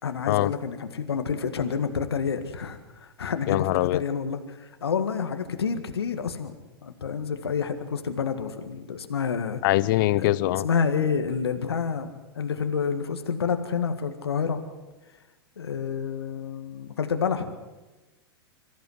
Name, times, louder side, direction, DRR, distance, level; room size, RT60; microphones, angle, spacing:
voice 1, 0.0-6.5 6.8-9.6 10.1-12.1 12.3-14.6 15.6-17.5, left 6 dB, 80° left, 7 dB, 1.8 m, -29 dB
voice 2, 3.5-4.0 9.6-10.7, left 17 dB, 55° left, 20 dB, 0.8 m, -22 dB
25.0 x 14.5 x 7.9 m, 1.1 s
hypercardioid pair, 105°, 13 cm